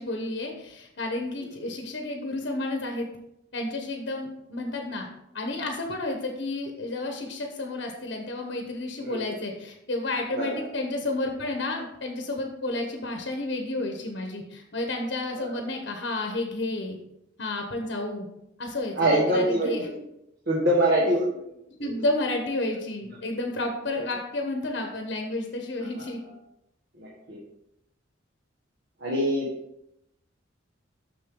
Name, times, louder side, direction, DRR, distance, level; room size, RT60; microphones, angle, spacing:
voice 1, 0.0-3.1 3.5-5.1 5.3-17.0 17.4-18.3 18.6-19.9 21.7-26.2, left 2 dB, 60° left, 3 dB, 0.9 m, -31 dB
voice 2, 19.0-19.9 20.5-21.4 26.0-26.1 27.0-27.4 29.0-29.5, right 1 dB, 60° right, -4 dB, 1.5 m, -24 dB
6.7 x 6.5 x 3.7 m, 0.83 s
head